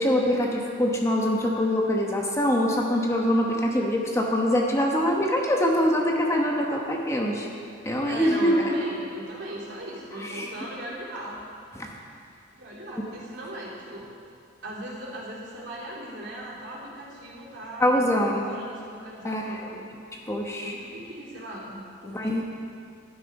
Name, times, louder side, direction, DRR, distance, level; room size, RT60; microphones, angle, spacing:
voice 1, 0.0-7.5 7.8-8.8 10.2-10.5 11.7-11.9 13.0-13.2 17.8-18.4 19.2-19.8 20.3-20.8 22.0-22.4, equal, 15° left, 0 dB, 1.1 m, -24 dB
voice 2, 8.1-11.4 12.5-14.1 14.6-19.8 20.6-22.4, right 1 dB, 65° right, -6 dB, 3.5 m, -38 dB
12.5 x 11.0 x 5.4 m, 2.4 s
head